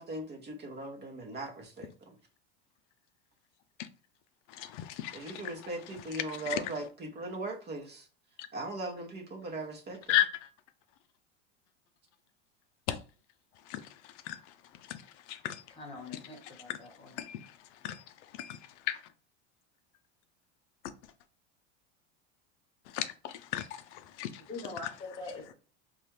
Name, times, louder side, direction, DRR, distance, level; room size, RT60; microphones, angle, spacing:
voice 1, 0.0-2.1 5.1-8.1 8.5-10.2, right 2 dB, 30° right, 0.9 m, -39 dB
voice 2, 4.5-5.3 6.3-6.6 10.1-10.5 12.9-13.0 13.7-13.8 14.3-14.4 14.9-15.0 15.3-15.6 16.7-16.8 17.2-17.5 17.8-18.0 18.4-18.6 18.9-19.0 22.9-24.4, left 13 dB, 75° left, 0.5 m, -33 dB
voice 3, 15.7-17.2 24.5-25.5, left 3 dB, 15° left, 1.3 m, -43 dB
4.0 x 2.4 x 3.1 m
supercardioid pair, 120°, 36 cm